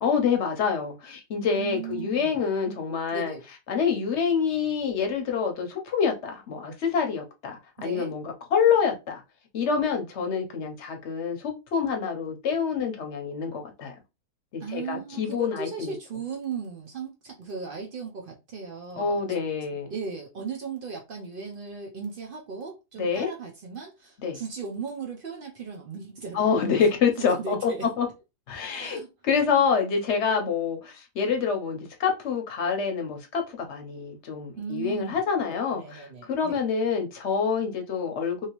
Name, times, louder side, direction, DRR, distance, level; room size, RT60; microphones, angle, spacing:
voice 1, 0.0-3.3 3.7-8.2 8.5-9.2 9.5-13.9 14.5-15.9 19.0-19.9 23.0-23.3 24.2-24.4 26.3-27.7 28.0-28.1 28.5-38.5, left 6 dB, 55° left, 0.9 m, -26 dB
voice 2, 1.5-2.4 3.1-3.4 7.8-8.1 14.6-19.2 19.9-26.9 27.2-27.9 28.7-29.1 34.5-35.2 35.7-36.6, right 5 dB, 90° right, 0.4 m, -37 dB
3.0 x 2.8 x 2.9 m
omnidirectional pair, 1.7 m